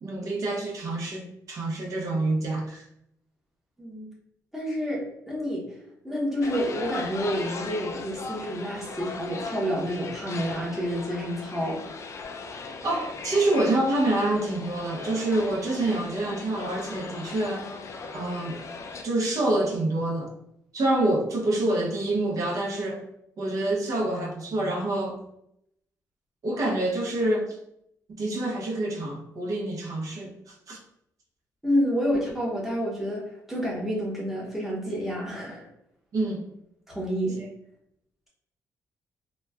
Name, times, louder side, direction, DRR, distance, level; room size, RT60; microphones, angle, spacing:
voice 1, 0.0-2.9 12.8-17.6 18.1-18.6 19.0-20.3 20.7-23.0 23.4-25.2 26.4-27.6 28.1-30.8 36.1-36.5 37.4-37.5, right 2 dB, 60° right, 0 dB, 0.8 m, -27 dB
voice 2, 4.5-5.6 6.0-12.0 31.6-35.7 36.9-37.4, equal, 5° right, -4 dB, 0.9 m, -29 dB
sound 1, 6.4-19.0, left 4 dB, 50° left, 0.3 m, -38 dB
3.0 x 2.2 x 2.3 m, 0.77 s
cardioid pair, 80°, 7 cm